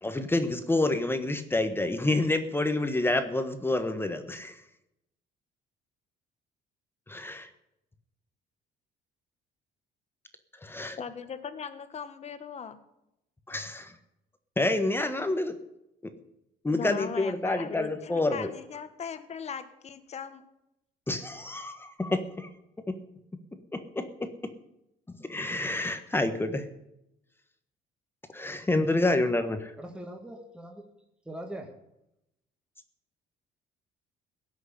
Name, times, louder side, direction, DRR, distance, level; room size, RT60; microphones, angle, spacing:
voice 1, 0.0-4.6 7.1-7.5 10.6-11.0 13.5-13.9 14.6-15.6 16.0-16.1 16.6-18.5 21.1-22.5 22.9-23.0 23.7-24.3 25.1-26.7 28.3-29.7, left 2 dB, 15° left, 8 dB, 1.3 m, -28 dB
voice 2, 11.0-12.8 16.7-20.4, left 7 dB, 40° left, 11 dB, 1.5 m, -39 dB
voice 3, 29.8-30.9 31.3-31.8, right 1 dB, 5° right, 2 dB, 1.9 m, -41 dB
17.0 x 6.4 x 9.9 m, 0.85 s
cardioid pair, 110°, 17 cm